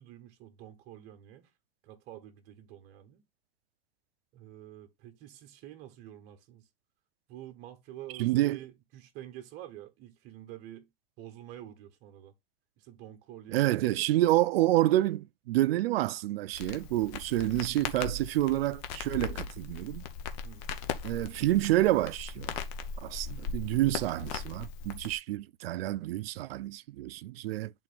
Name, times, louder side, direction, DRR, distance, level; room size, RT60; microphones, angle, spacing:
voice 1, 0.0-1.5 1.8-3.2 4.3-6.7 7.3-10.9 11.2-12.3 12.8-13.9 20.4-20.6, right 12 dB, 35° right, 1.1 m, -48 dB
voice 2, 8.2-8.6 13.5-20.0 21.0-22.5 23.0-27.7, right 16 dB, 80° right, 0.5 m, -28 dB
Crackle, 16.5-25.2, left 6 dB, 40° left, 0.8 m, -39 dB
10.5 x 3.9 x 2.5 m
supercardioid pair, 160°, 29 cm